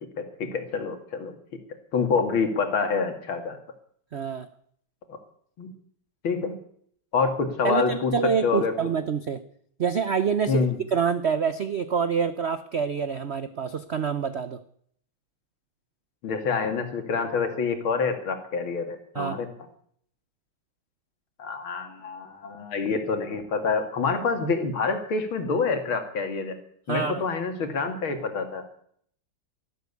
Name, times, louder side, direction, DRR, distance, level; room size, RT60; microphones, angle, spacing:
voice 1, 0.2-1.3 1.9-3.6 5.1-5.2 5.6-5.7 6.2-6.6 7.1-8.1 8.4-8.7 10.5-10.8 16.2-19.5 21.4-26.6 26.9-28.6, left 5 dB, 80° left, 7 dB, 2.9 m, -27 dB
voice 2, 4.1-4.5 7.6-9.4 9.8-10.7 10.9-14.6 19.1-19.4 26.9-27.2, right 6 dB, 70° right, 13 dB, 0.6 m, -26 dB
13.0 x 12.5 x 8.2 m, 0.63 s
omnidirectional pair, 2.2 m